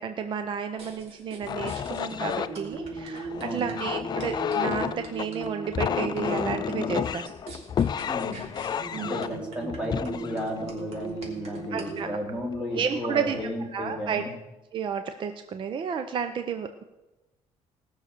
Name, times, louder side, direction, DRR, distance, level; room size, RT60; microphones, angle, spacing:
voice 1, 0.0-7.3 8.9-9.4 11.7-12.2 12.7-13.4 13.7-14.2 14.7-16.8, right 7 dB, 45° right, 8 dB, 0.7 m, -32 dB
sound 1, 0.8-12.1, right 3 dB, 60° right, 3.2 m, -38 dB
sound 2, 1.4-11.7 12.3-12.6 13.0-13.5, left 8 dB, 35° left, 0.4 m, -31 dB
voice 2, 3.4-3.7 8.0-8.5 9.0-14.3, equal, 10° right, -1 dB, 3.1 m, -34 dB
18.5 x 6.5 x 6.7 m, 1.0 s
cardioid pair, 135°, 12 cm